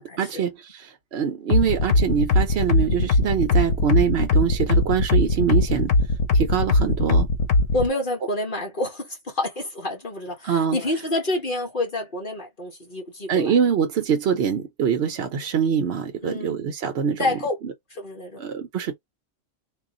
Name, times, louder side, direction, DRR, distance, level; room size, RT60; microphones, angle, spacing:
voice 1, 0.0-5.9 6.3-7.3 10.4-10.8 13.3-17.3 17.6-17.7 18.4-18.9, right 7 dB, 60° right, 0.9 m, -24 dB
sound 1, 1.5-7.9, left 2 dB, 80° left, 1.2 m, -19 dB
voice 2, 7.7-13.5 16.2-16.6 17.2-17.6 17.9-18.4, left 2 dB, 45° left, 1.4 m, -28 dB
3.8 x 2.5 x 3.7 m
omnidirectional pair, 1.3 m